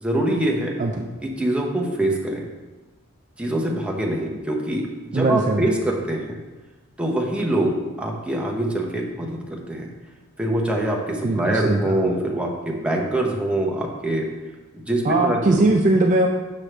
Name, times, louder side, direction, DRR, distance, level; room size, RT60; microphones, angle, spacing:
voice 1, 0.0-0.8 1.2-2.5 3.4-6.4 7.0-9.9 10.4-14.3 14.7-15.7, right 1 dB, 5° right, -1 dB, 0.8 m, -24 dB
voice 2, 5.1-5.7 11.2-12.0 15.0-16.3, right 2 dB, 35° right, 1 dB, 0.4 m, -20 dB
6.3 x 6.2 x 3.3 m, 1.2 s
head